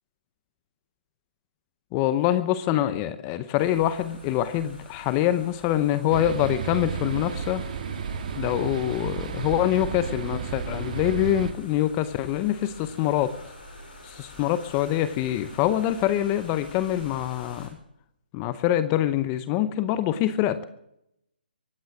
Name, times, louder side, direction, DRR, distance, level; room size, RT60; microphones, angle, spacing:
voice 1, 1.9-7.6 8.4-13.4 14.0-17.7 18.3-20.7, left 12 dB, 20° left, 14 dB, 0.7 m, -25 dB
sound 1, 3.6-17.7, left 1 dB, 65° left, 7.8 m, -47 dB
sound 2, 6.1-11.5, right 7 dB, 45° right, 2.1 m, -32 dB
23.5 x 9.3 x 6.2 m, 0.79 s
hypercardioid pair, 155°, 6 cm